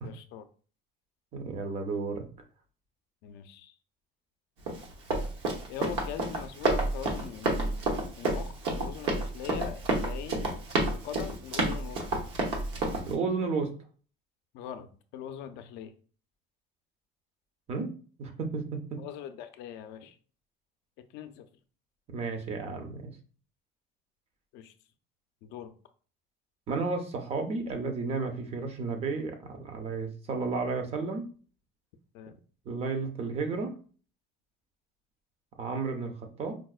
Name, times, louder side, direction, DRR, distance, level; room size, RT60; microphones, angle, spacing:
voice 1, 0.0-0.4 3.2-3.7 5.7-7.8 8.2-12.0 14.5-15.9 19.0-20.2 21.1-21.5 24.5-24.7 25.4-25.7 32.1-32.4, left 9 dB, 65° left, 9 dB, 0.4 m, -42 dB
voice 2, 1.3-2.3 13.1-13.7 17.7-17.9 18.2-18.8 22.1-23.1 26.7-31.3 32.7-33.7 35.6-36.6, right 4 dB, 30° right, 5 dB, 0.5 m, -32 dB
Run, 4.7-13.1, right 2 dB, 75° right, 0.9 m, -30 dB
4.6 x 2.1 x 2.3 m, 0.40 s
cardioid pair, 170°, 20 cm